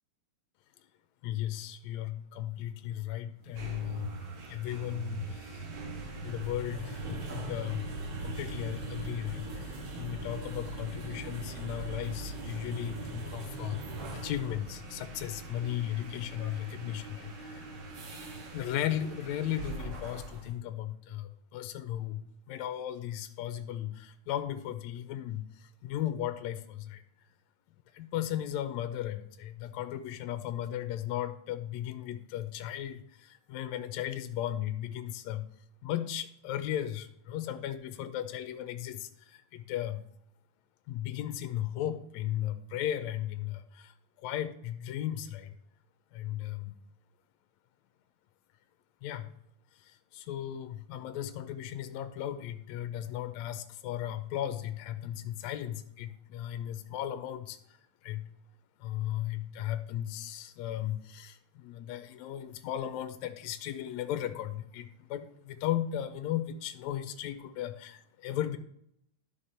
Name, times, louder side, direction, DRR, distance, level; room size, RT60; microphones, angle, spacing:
voice 1, 1.2-4.2 4.5-5.6 6.2-7.9 8.2-13.8 14.1-17.7 18.5-27.0 27.9-35.5 35.8-40.0 40.9-45.6 46.1-46.7 49.0-49.3 49.8-57.8 58.0-58.3 58.8-68.6, left 12 dB, 80° left, 9 dB, 1.8 m, -36 dB
sound 1, 3.4-20.5, right 2 dB, 50° right, 1.8 m, -41 dB
11.5 x 5.3 x 4.3 m, 0.73 s
omnidirectional pair, 3.5 m